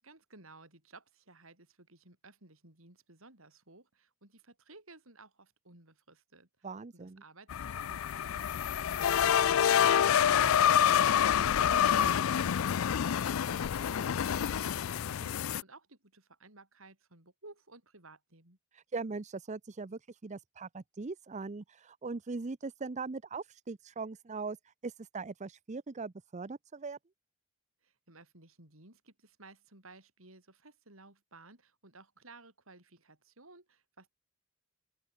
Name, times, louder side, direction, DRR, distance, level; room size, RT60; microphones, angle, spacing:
voice 1, 0.0-18.6 27.8-34.1, right 3 dB, 80° right, 7.7 m, -57 dB
voice 2, 6.6-7.2 11.7-12.2 18.7-27.0, right 4 dB, 35° right, 0.6 m, -40 dB
sound 1, 7.5-15.6, left 9 dB, 80° left, 0.4 m, -27 dB
open air
head